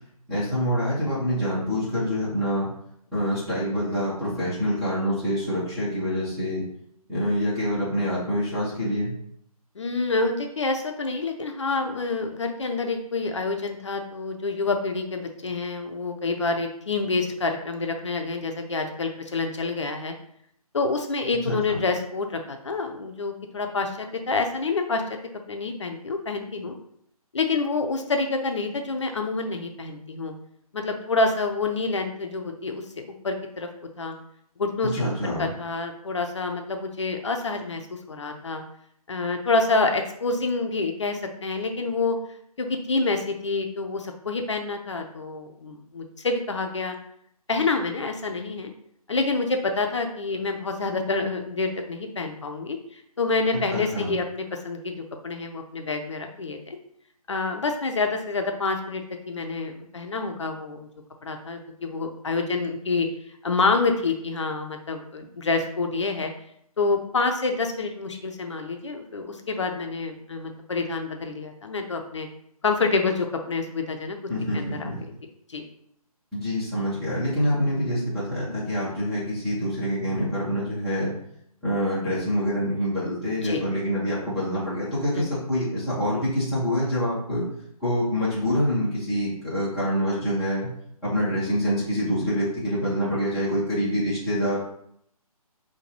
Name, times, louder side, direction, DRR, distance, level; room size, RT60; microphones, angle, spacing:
voice 1, 0.3-2.7 3.1-6.6 7.1-9.1 21.4-21.8 34.9-35.5 53.7-54.1 74.3-75.0 76.3-81.1 81.6-87.5 87.8-90.7 91.0-94.6, equal, ahead, -15 dB, 0.5 m, -26 dB
voice 2, 9.8-20.1 20.7-25.2 25.5-26.7 27.3-30.3 30.7-32.8 33.2-33.7 34.0-34.2 34.6-38.6 39.1-42.2 42.6-46.9 47.5-48.7 49.1-56.8 57.3-60.9 61.2-63.1 63.4-66.3 66.8-72.3 72.6-74.2 74.5-74.9 75.5-75.6 83.4-83.6 85.1-85.3, left 3 dB, 50° left, 4 dB, 0.5 m, -27 dB
5.1 x 2.2 x 3.0 m, 0.70 s
figure-of-eight pair, 150°, 20 cm